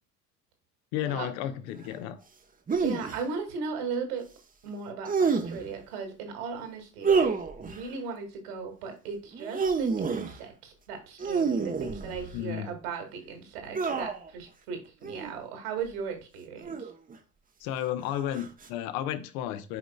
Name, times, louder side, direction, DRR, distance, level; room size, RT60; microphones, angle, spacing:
voice 1, 0.9-2.2 12.3-12.7 17.6-19.8, left 11 dB, 55° left, 1.0 m, -33 dB
sound 1, 2.7-3.2 5.0-5.7 7.0-7.8 9.3-10.4 11.2-12.4 13.7-14.3 15.0-15.3 16.6-17.1 18.3-18.7, right 5 dB, 15° right, 0.9 m, -28 dB
voice 2, 2.7-4.3 4.6-16.9, right 5 dB, 65° right, 2.3 m, -37 dB
11.0 x 5.2 x 2.3 m
figure-of-eight pair, 65°, 48 cm